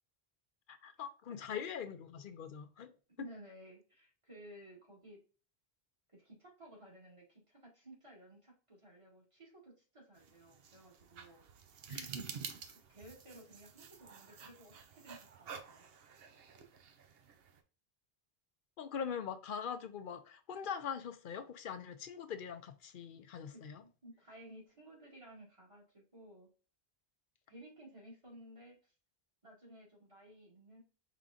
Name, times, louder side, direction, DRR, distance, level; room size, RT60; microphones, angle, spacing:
voice 1, 0.7-2.9 11.9-12.1 18.8-23.8, left 7 dB, 65° left, 0.7 m, -42 dB
voice 2, 3.2-5.2 6.1-11.4 12.7-15.9 16.6-16.7 23.5-26.5 27.5-28.9 29.4-30.8, right 1 dB, 30° right, 2.1 m, -56 dB
sound 1, 10.2-17.6, right 6 dB, 70° right, 0.9 m, -50 dB
5.0 x 3.7 x 2.5 m
omnidirectional pair, 1.0 m